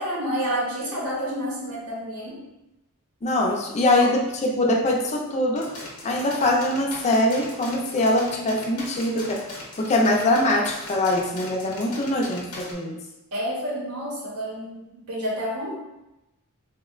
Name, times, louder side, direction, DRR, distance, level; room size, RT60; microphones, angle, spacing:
voice 1, 0.0-2.4 4.0-4.1 13.3-15.8, equal, 75° right, -4 dB, 0.8 m, -29 dB
voice 2, 3.2-5.7 6.0-9.4 9.8-13.0, left 1 dB, 30° left, 0 dB, 0.4 m, -23 dB
sound 1, 5.5-12.7, left 2 dB, 85° left, 0.7 m, -40 dB
3.5 x 2.1 x 2.4 m, 0.97 s
head